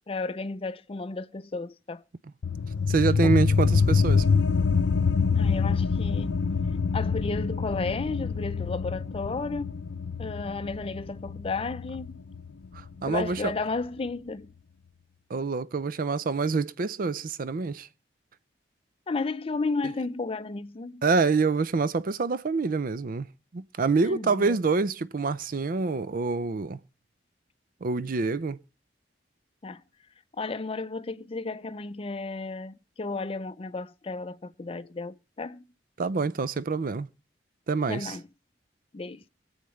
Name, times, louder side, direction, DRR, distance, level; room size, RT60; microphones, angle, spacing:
voice 1, 0.1-2.0 3.2-3.3 5.3-6.4 6.9-9.9 10.2-12.2 13.1-14.5 19.1-21.0 24.0-24.6 29.6-29.8 30.4-35.7 37.9-38.2 38.9-39.2, left 3 dB, 30° left, 0.5 m, -33 dB
sound 1, 2.4-13.5, left 5 dB, 80° left, 0.5 m, -26 dB
voice 2, 2.9-4.3 12.7-13.5 15.3-17.9 21.0-23.3 23.5-26.8 27.8-28.6 36.0-37.1 37.7-38.2, right 4 dB, 50° right, 0.5 m, -26 dB
24.0 x 8.0 x 3.2 m
head